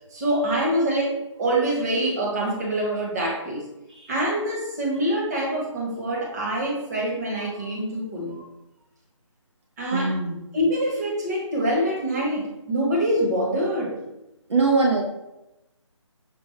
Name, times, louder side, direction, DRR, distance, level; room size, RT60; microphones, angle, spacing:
voice 1, 0.1-3.7 4.1-8.4 9.8-10.2 10.5-14.0, right 1 dB, 30° right, -2 dB, 1.1 m, -25 dB
voice 2, 9.9-10.4 14.5-15.0, right 3 dB, 60° right, -1 dB, 0.7 m, -21 dB
6.1 x 2.3 x 3.2 m, 0.92 s
figure-of-eight pair, 155°, 16 cm